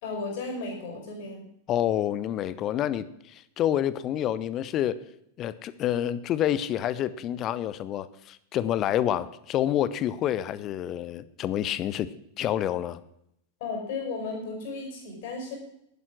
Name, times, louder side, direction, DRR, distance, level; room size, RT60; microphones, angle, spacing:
voice 1, 0.0-1.5 13.6-15.6, left 3 dB, 50° left, 2 dB, 4.9 m, -34 dB
voice 2, 1.7-5.0 5.4-12.1 12.4-13.0, left 11 dB, 35° left, 16 dB, 0.7 m, -28 dB
11.0 x 10.0 x 6.2 m, 0.75 s
figure-of-eight pair, 90°, 0 cm